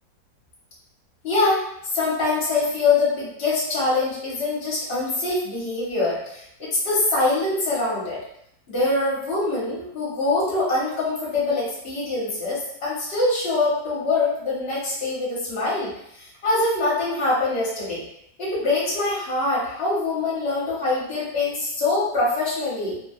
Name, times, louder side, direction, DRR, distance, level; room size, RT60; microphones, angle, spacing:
voice 1, 1.2-1.7 1.9-8.2 8.7-18.0 18.4-23.0, left 3 dB, 35° left, -8 dB, 1.3 m, -24 dB
3.3 x 2.6 x 2.3 m, 0.74 s
omnidirectional pair, 2.1 m